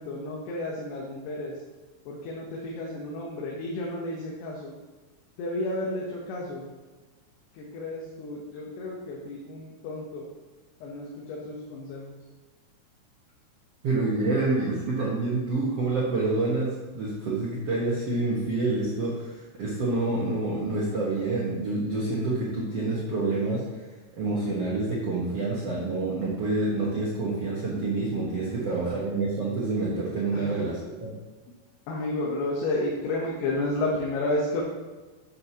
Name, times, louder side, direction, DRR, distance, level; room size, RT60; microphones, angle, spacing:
voice 1, 0.0-1.6 2.1-4.7 5.4-6.6 7.5-10.3 10.8-12.2 30.3-30.6 31.9-34.6, left 2 dB, 75° left, -2 dB, 3.1 m, -32 dB
voice 2, 13.8-23.6 24.2-31.1, right 2 dB, 60° right, -6 dB, 1.7 m, -27 dB
11.0 x 7.6 x 3.0 m, 1.3 s
omnidirectional pair, 4.8 m